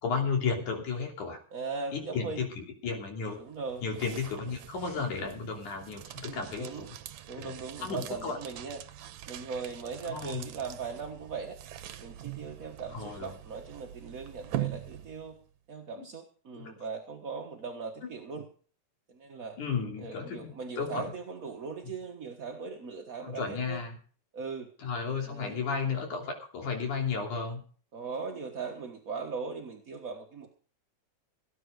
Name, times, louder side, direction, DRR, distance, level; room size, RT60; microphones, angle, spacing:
voice 1, 0.0-1.4 1.9-3.4 3.8-6.9 7.4-7.5 7.8-8.4 10.1-10.5 12.9-13.3 16.6-16.7 19.6-20.5 20.8-21.1 23.2-24.0 24.8-27.6, left 5 dB, 75° left, 2 dB, 4.6 m, -33 dB
voice 2, 1.5-2.5 3.4-3.8 4.7-5.3 6.1-6.9 7.3-8.8 9.2-11.6 12.0-15.4 15.7-18.4 19.1-19.6 20.0-23.8 24.3-24.7 25.2-25.6 27.9-30.6, right 5 dB, 45° right, 2 dB, 1.1 m, -39 dB
sound 1, 3.3-15.5, right 13 dB, 70° right, 2.1 m, -43 dB
18.0 x 9.5 x 5.1 m, 0.42 s
omnidirectional pair, 3.5 m